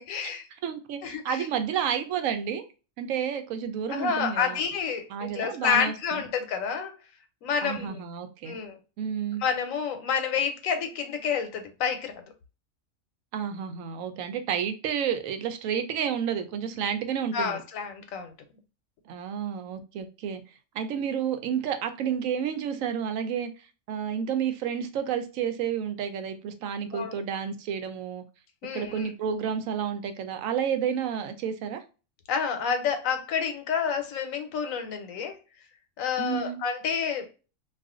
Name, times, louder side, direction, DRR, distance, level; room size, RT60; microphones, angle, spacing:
voice 1, 0.0-0.5 1.0-1.5 3.9-6.9 7.4-8.0 8.5-8.8 9.4-12.2 17.3-18.3 26.9-27.2 28.6-29.1 32.3-35.4 36.0-37.3, left 6 dB, 85° left, 1.1 m, -29 dB
voice 2, 0.6-2.7 3.0-4.6 5.1-6.2 7.6-8.6 9.0-9.4 13.3-17.6 19.1-20.4 20.7-23.5 23.9-28.2 28.7-31.8 36.2-36.6, right 8 dB, 80° right, 1.0 m, -30 dB
2.4 x 2.4 x 3.6 m
omnidirectional pair, 1.4 m